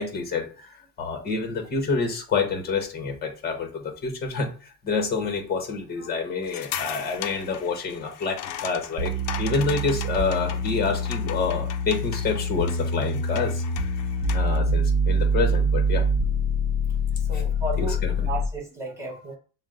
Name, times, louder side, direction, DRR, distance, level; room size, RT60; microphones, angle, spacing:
voice 1, 0.0-9.1 9.4-13.6 14.3-16.0 17.3-17.4 17.8-18.3, left 4 dB, 20° left, 4 dB, 1.0 m, -28 dB
sound 1, 6.4-14.6, left 10 dB, 45° left, 0.5 m, -38 dB
sound 2, 9.0-18.6, equal, 50° right, 0.7 m, -25 dB
voice 2, 17.2-19.4, right 2 dB, 5° right, -2 dB, 0.8 m, -33 dB
6.2 x 2.1 x 3.7 m, 0.37 s
cardioid pair, 170°, 43 cm